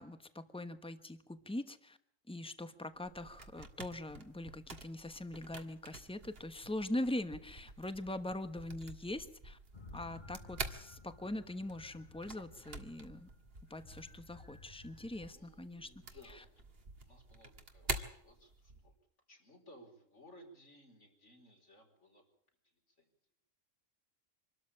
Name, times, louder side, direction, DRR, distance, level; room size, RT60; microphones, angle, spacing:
voice 1, 0.0-2.0 2.3-9.6 9.9-13.3 13.7-15.9, left 1 dB, 5° left, 10 dB, 1.1 m, -42 dB
sound 1, 2.9-18.9, right 3 dB, 50° right, 1.9 m, -48 dB
sound 2, 9.7-15.3, left 4 dB, 35° left, 1.5 m, -56 dB
voice 2, 14.9-18.9 19.3-22.2 22.6-23.1, left 1 dB, 65° left, 2 dB, 5.0 m, -60 dB
25.5 x 13.0 x 8.7 m, 0.72 s
omnidirectional pair, 1.3 m